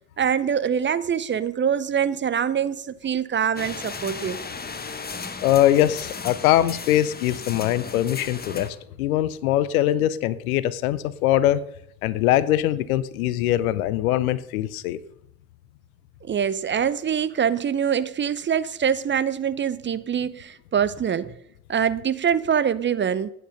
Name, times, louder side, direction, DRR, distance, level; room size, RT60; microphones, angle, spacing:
voice 1, 0.2-4.4 16.2-21.3 21.7-23.3, right 8 dB, 25° right, 0.7 m, -24 dB
sound 1, 3.6-8.7, left 4 dB, 20° left, 1.3 m, -36 dB
voice 2, 5.4-11.6 12.0-15.0, left 13 dB, 65° left, 0.8 m, -22 dB
15.5 x 9.4 x 5.4 m
figure-of-eight pair, 50°, 45 cm